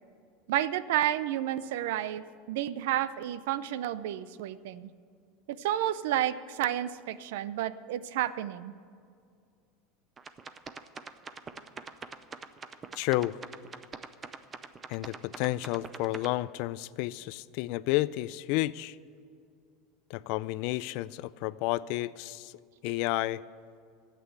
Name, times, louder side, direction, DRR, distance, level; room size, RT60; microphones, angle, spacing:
voice 1, 0.5-4.9 5.5-8.7, right 12 dB, 75° right, 16 dB, 0.5 m, -31 dB
sound 1, 10.2-16.3, right 5 dB, 20° right, 0.5 m, -43 dB
voice 2, 13.0-13.4 14.9-19.0 20.1-22.5 22.8-23.4, left 18 dB, 55° left, 18 dB, 0.3 m, -31 dB
13.0 x 8.4 x 7.9 m, 2.3 s
supercardioid pair, 170°, 0 cm